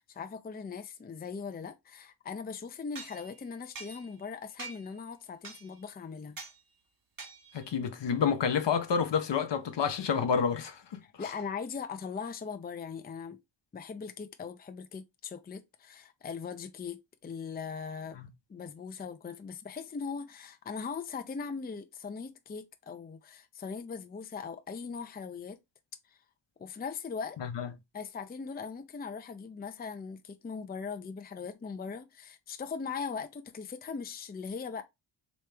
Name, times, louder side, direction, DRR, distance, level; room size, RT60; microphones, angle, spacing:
voice 1, 0.0-6.4 11.0-13.4 13.7-18.2 18.5-25.6 26.1-26.2 26.6-27.4 27.9-34.8, left 5 dB, 20° left, 0.5 m, -40 dB
sound 1, 2.9-4.3 4.6-5.0 5.4-5.9 6.4-6.6 7.2-7.7, right 4 dB, 45° right, 1.2 m, -46 dB
voice 2, 7.5-11.0 18.2-18.3 27.4-27.7, left 6 dB, 65° left, 0.9 m, -29 dB
3.2 x 3.1 x 3.3 m
cardioid pair, 65°, 47 cm